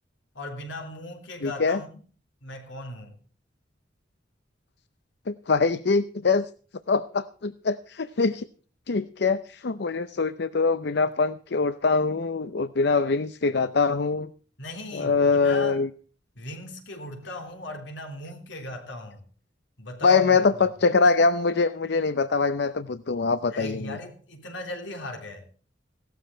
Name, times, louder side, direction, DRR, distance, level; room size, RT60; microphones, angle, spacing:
voice 1, 0.3-2.0 2.4-3.2 14.6-15.8 16.3-19.2 19.8-20.4 23.5-25.4, left 2 dB, 80° left, 3.4 m, -38 dB
voice 2, 1.4-1.8 5.3-6.4 6.9-8.5 8.9-14.3 14.9-15.9 20.0-24.0, left 4 dB, 65° left, 0.6 m, -23 dB
17.0 x 13.0 x 4.4 m
head